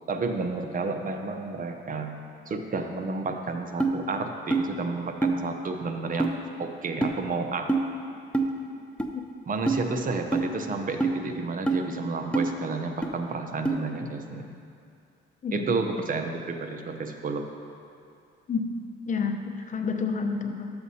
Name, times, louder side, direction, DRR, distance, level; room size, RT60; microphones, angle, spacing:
voice 1, 0.1-2.2 2.5-7.8 9.5-14.4 15.5-17.4, right 4 dB, 45° right, 5 dB, 0.8 m, -31 dB
sound 1, 3.8-3.9 4.5-4.7 5.2-5.4 6.2-6.3 7.0-7.1 7.7-7.8 8.3-8.5 9.0-9.1 9.7-9.8 10.3-10.5 11.0-11.1 11.7-11.8 12.3-12.5 13.0-13.1 13.6-13.8, right 3 dB, 5° left, 0.6 m, -24 dB
voice 2, 19.1-20.7, left 5 dB, 40° left, 5 dB, 0.8 m, -29 dB
12.0 x 7.8 x 2.8 m, 2.5 s
cardioid pair, 90°, 20 cm